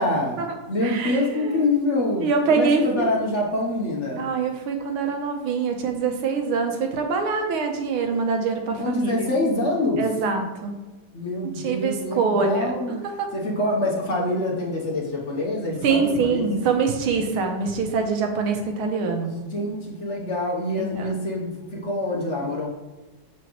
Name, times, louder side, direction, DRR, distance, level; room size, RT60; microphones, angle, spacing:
voice 1, 0.0-4.3 8.8-10.1 11.1-13.0 13.3-16.7 19.3-22.7, left 1 dB, 50° left, -1 dB, 0.9 m, -26 dB
voice 2, 0.8-1.5 2.2-3.1 4.2-9.3 10.0-10.7 11.6-12.7 13.2-13.3 15.8-19.3 21.0-21.1, right 5 dB, 80° right, 4 dB, 1.8 m, -24 dB
7.5 x 6.1 x 3.0 m, 1.2 s
omnidirectional pair, 2.3 m